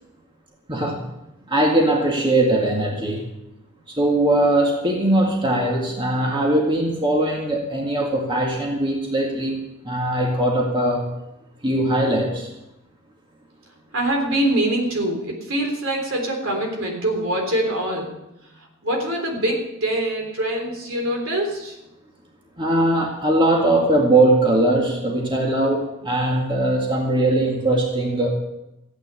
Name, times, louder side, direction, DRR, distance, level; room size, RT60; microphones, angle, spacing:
voice 1, 0.7-1.0 1.5-3.2 3.9-11.1 11.6-12.5 22.6-28.3, right 1 dB, 25° right, -1 dB, 1.9 m, -20 dB
voice 2, 13.9-18.1 18.8-21.8, right 1 dB, 65° right, 2 dB, 3.6 m, -24 dB
15.5 x 9.1 x 6.9 m, 0.92 s
head